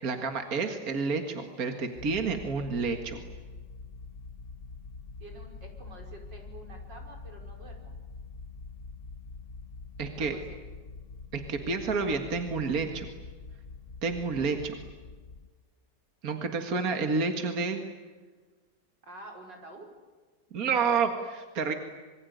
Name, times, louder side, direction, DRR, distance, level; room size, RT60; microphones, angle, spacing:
voice 1, 0.0-3.2 10.0-10.4 11.3-13.1 14.0-14.6 16.2-17.8 20.5-21.7, right 4 dB, 55° right, 5 dB, 2.3 m, -29 dB
sound 1, 2.0-15.5, left 4 dB, 35° left, 1.3 m, -45 dB
voice 2, 5.2-8.0 10.1-10.6 14.4-14.8 19.0-19.9, right 1 dB, 90° right, 1 dB, 6.1 m, -48 dB
26.0 x 23.5 x 9.4 m, 1.4 s
omnidirectional pair, 1.9 m